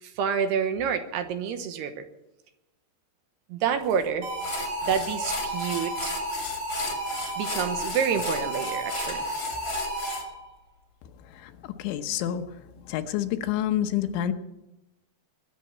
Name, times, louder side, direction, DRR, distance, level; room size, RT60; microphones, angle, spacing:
voice 1, 0.0-2.0 3.5-4.3 4.9-6.2 7.4-9.3, right 7 dB, 75° right, 8 dB, 2.9 m, -28 dB
sound 1, 3.9-4.0 4.4-10.2, left 4 dB, 35° left, 2.0 m, -36 dB
sound 2, 4.2-10.5, right 1 dB, 50° right, 5.7 m, -32 dB
voice 2, 11.8-12.6 12.9-14.3, left 11 dB, 85° left, 8 dB, 3.3 m, -28 dB
21.5 x 7.7 x 8.6 m, 0.94 s
omnidirectional pair, 5.2 m